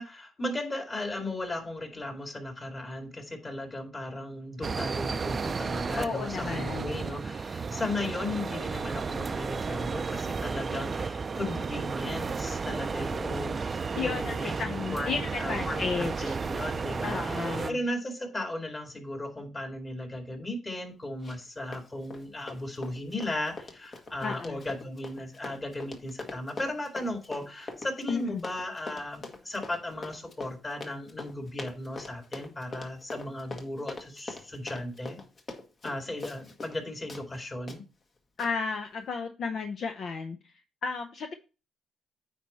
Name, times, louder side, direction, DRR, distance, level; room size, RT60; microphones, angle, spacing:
voice 1, 0.0-35.2 35.8-37.8, left 1 dB, 25° left, 3 dB, 2.4 m, -36 dB
sound 1, 4.6-17.7, right 5 dB, 35° right, 0.5 m, -33 dB
voice 2, 6.0-7.0 14.0-16.4 17.0-17.8 24.2-24.6 28.1-28.4 38.4-40.4 40.8-41.3, left 5 dB, 60° left, 5 dB, 0.8 m, -33 dB
Run, 21.2-21.5 21.7-36.8 37.1-37.2 37.7-37.8 38.4-38.5, left 3 dB, 45° left, 1.6 m, -42 dB
9.2 x 4.2 x 4.2 m, 0.32 s
cardioid pair, 90°, 0 cm